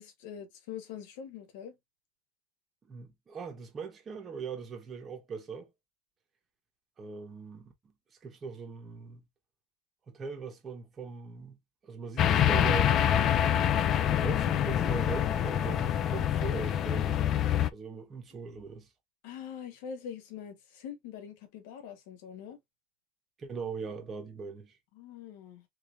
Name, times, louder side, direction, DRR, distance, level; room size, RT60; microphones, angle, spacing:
voice 1, 0.0-1.8 19.2-22.6 24.9-25.7, left 8 dB, 70° left, 1.4 m, -44 dB
voice 2, 2.8-5.7 7.0-7.9 8.2-9.2 10.1-11.6 11.8-12.9 14.1-18.9 23.4-24.8, right 5 dB, 20° right, 0.9 m, -41 dB
sound 1, 12.2-17.7, left 10 dB, 30° left, 0.3 m, -26 dB
3.5 x 3.3 x 2.4 m
supercardioid pair, 160°, 0 cm